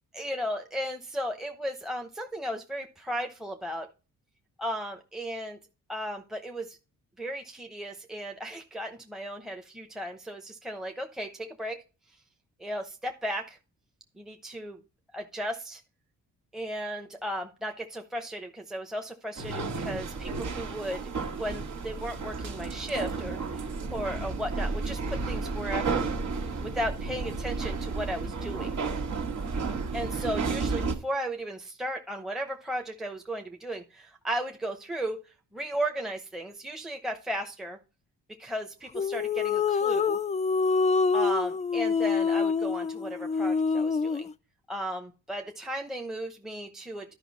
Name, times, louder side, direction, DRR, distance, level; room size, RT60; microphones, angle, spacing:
voice 1, 0.2-3.9 4.6-5.6 5.9-6.8 7.2-11.8 12.6-13.6 14.2-14.8 15.1-15.8 16.5-21.1 21.4-26.0 26.6-28.7 29.9-35.2 35.5-37.8 38.3-40.2 41.1-44.3 44.7-47.1, equal, ahead, 3 dB, 0.8 m, -35 dB
sound 1, 19.4-31.0, right 4 dB, 70° right, 1.9 m, -32 dB
sound 2, 38.9-44.3, left 5 dB, 20° left, 0.4 m, -26 dB
11.5 x 5.5 x 4.1 m, 0.32 s
cardioid pair, 105°, 32 cm